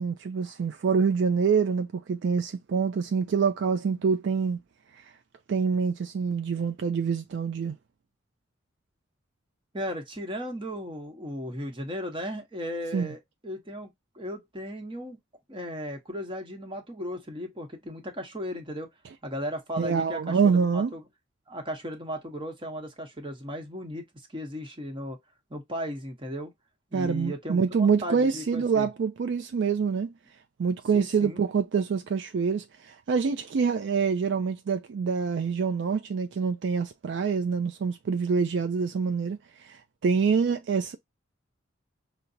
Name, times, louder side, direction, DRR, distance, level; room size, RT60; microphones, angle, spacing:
voice 1, 0.0-4.6 4.9-5.0 5.5-7.8 12.9-13.1 19.8-20.9 26.9-30.1 30.6-41.0, right 5 dB, 60° right, 0.3 m, -26 dB
voice 2, 9.7-15.2 15.5-18.9 19.2-20.4 20.7-21.0 21.5-24.1 24.3-25.2 25.5-26.5 26.9-28.9 30.9-31.4, equal, 25° right, 0.8 m, -36 dB
5.6 x 2.0 x 2.6 m
head